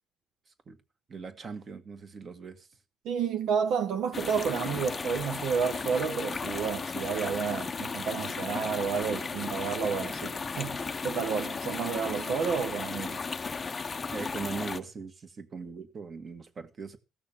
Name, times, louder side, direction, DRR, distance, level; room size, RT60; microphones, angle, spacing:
voice 1, 0.5-0.8 1.1-2.7 14.1-17.0, right 5 dB, 35° right, 1.7 m, -40 dB
voice 2, 3.0-13.2, right 6 dB, 70° right, 1.0 m, -31 dB
sound 1, 4.1-14.8, left 4 dB, 25° left, 0.6 m, -35 dB
16.0 x 6.3 x 7.2 m
cardioid pair, 125°, 0 cm